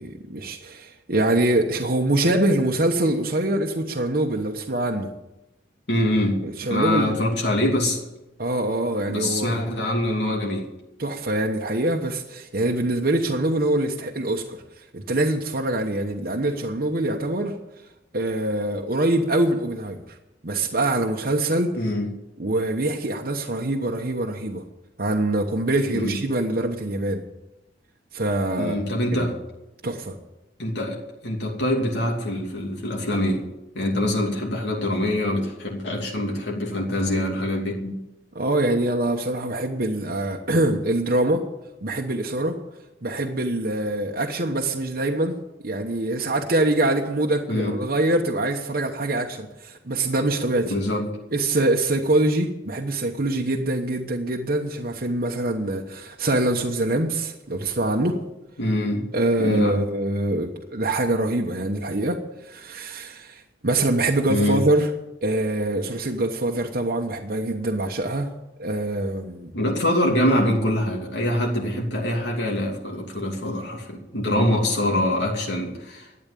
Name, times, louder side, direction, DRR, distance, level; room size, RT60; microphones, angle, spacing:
voice 1, 0.0-5.1 6.4-7.2 8.4-9.6 11.0-14.6 14.9-17.5 18.1-20.0 20.4-21.7 22.4-24.6 25.0-27.2 28.1-28.8 29.1-29.3 29.8-30.2 38.3-41.4 41.8-42.6 43.0-45.4 45.6-50.7 51.3-58.2 59.1-64.9 65.2-68.3 68.6-69.5, right 1 dB, 55° right, 1 dB, 1.1 m, -24 dB
voice 2, 5.9-6.4 6.7-8.0 9.1-10.7 21.8-22.1 25.9-26.2 28.6-29.3 30.6-31.0 31.2-33.4 33.7-38.0 47.5-47.7 50.7-51.0 58.6-59.1 59.4-59.8 64.3-64.6 69.5-76.1, left 1 dB, 80° left, -1 dB, 2.9 m, -24 dB
12.5 x 8.9 x 8.6 m, 0.93 s
head